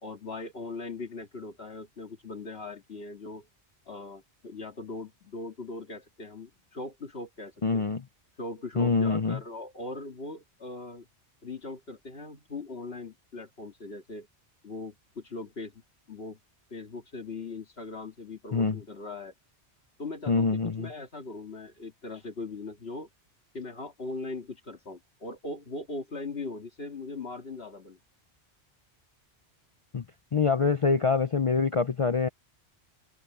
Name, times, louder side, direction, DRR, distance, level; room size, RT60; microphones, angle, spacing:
voice 1, 0.0-3.5 3.9-7.9 8.4-11.1 11.4-14.3 14.6-15.8 16.1-16.4 16.7-19.3 20.0-20.5 20.8-23.1 23.5-28.0, left 3 dB, 65° left, 2.5 m, -40 dB
voice 2, 7.6-8.0 8.8-9.4 18.5-18.8 20.3-20.9 29.9-30.0 30.3-32.3, left 4 dB, 40° left, 0.5 m, -25 dB
open air
omnidirectional pair, 1.1 m